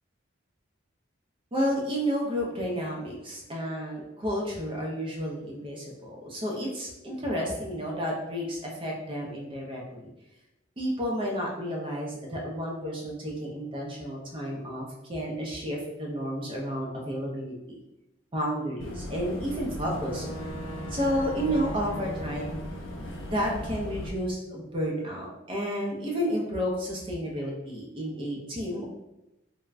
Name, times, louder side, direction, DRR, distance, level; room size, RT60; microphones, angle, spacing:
voice 1, 1.5-10.1 10.8-17.8 18.3-20.3 20.9-22.6 23.2-28.9, equal, 25° right, -2 dB, 0.5 m, -31 dB
Boat Water vehicle / Engine, 18.8-24.1, equal, 85° left, 0.5 m, -37 dB
3.2 x 2.1 x 2.4 m, 0.95 s
head